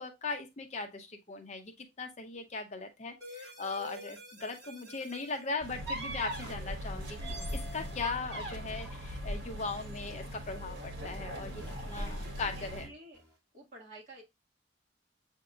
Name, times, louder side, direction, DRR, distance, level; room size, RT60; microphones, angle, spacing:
voice 1, 0.0-12.9, left 4 dB, 40° left, 5 dB, 0.6 m, -39 dB
sound 1, 3.2-5.5 6.3-6.6 7.2-8.1 8.8-9.2 10.4-10.7 11.0-11.2 11.5-11.7 12.1-12.3 12.6-12.8 13.1-13.3, equal, 20° right, 1.9 m, -49 dB
sound 2, 5.6-12.9, equal, 75° right, 1.5 m, -39 dB
voice 2, 11.8-13.2 13.5-14.2, right 1 dB, 40° right, -2 dB, 1.7 m, -52 dB
7.5 x 2.7 x 2.3 m, 0.22 s
head